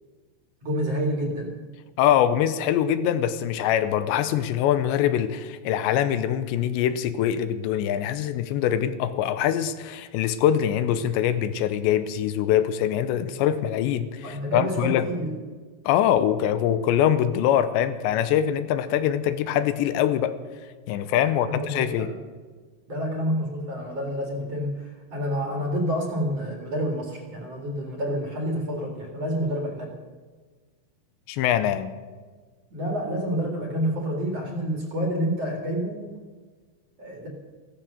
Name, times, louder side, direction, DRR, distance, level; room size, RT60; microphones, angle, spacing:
voice 1, 0.6-1.5 14.2-15.4 21.2-22.2 22.9-30.0 32.7-36.1 37.0-37.3, equal, 45° right, 1 dB, 2.4 m, -28 dB
voice 2, 2.0-15.1 15.9-20.4 20.9-22.1 31.3-31.9, left 10 dB, 85° left, 12 dB, 2.9 m, -23 dB
15.5 x 13.5 x 6.5 m, 1.4 s
omnidirectional pair, 5.2 m